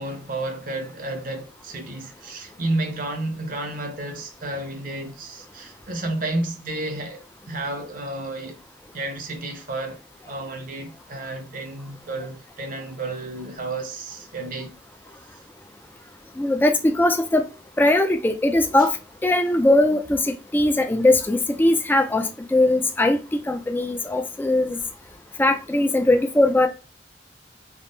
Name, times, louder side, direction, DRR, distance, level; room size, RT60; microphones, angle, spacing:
voice 1, 0.0-8.6 8.9-14.7 15.3-15.4 18.8-18.9, right 2 dB, 50° right, 0.7 m, -31 dB
voice 2, 16.4-17.4 17.8-19.0 19.2-23.2 23.5-24.8 25.4-26.7, left 1 dB, 10° left, 0.3 m, -20 dB
3.5 x 2.0 x 2.5 m
head